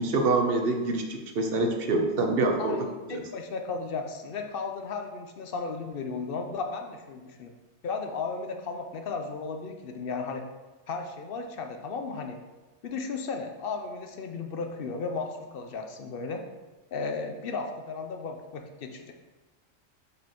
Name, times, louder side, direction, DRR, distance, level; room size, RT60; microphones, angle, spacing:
voice 1, 0.0-2.9 3.1-3.2, right 2 dB, 55° right, 4 dB, 0.9 m, -26 dB
voice 2, 3.1-7.5 7.8-10.4 10.9-12.4 12.8-16.4 16.9-19.1, left 4 dB, 55° left, 5 dB, 0.7 m, -35 dB
6.5 x 5.1 x 3.0 m, 1.2 s
omnidirectional pair, 1.4 m